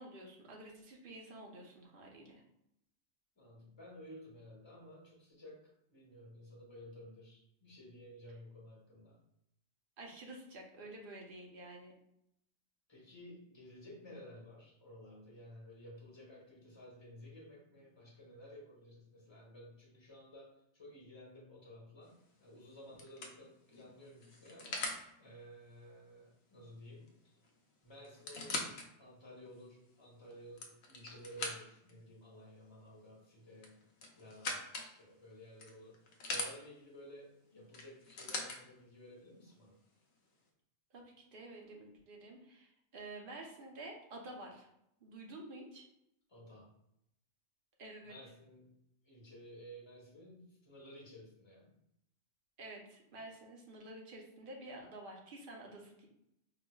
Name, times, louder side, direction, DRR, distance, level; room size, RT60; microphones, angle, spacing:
voice 1, 0.0-2.4 10.0-11.9 40.9-44.7 45.0-45.8 47.8-48.2 52.6-56.1, right 2 dB, 50° right, 0 dB, 0.8 m, -50 dB
voice 2, 3.4-5.6 5.9-9.2 12.9-22.2 22.4-24.8 25.2-27.1 27.8-28.7 29.0-33.8 34.1-39.8 46.3-46.7 48.0-48.7 49.0-51.7, equal, 25° left, -3 dB, 1.0 m, -54 dB
sound 1, 22.1-22.4 23.0-25.0 27.1-27.2 27.4-27.5 28.0-28.9 29.5-29.6 30.3-31.9 33.6-34.9 35.6-36.5 37.7-38.6 39.5-39.6, left 2 dB, 60° left, 0.8 m, -41 dB
4.7 x 2.4 x 2.2 m, 0.78 s
omnidirectional pair, 1.3 m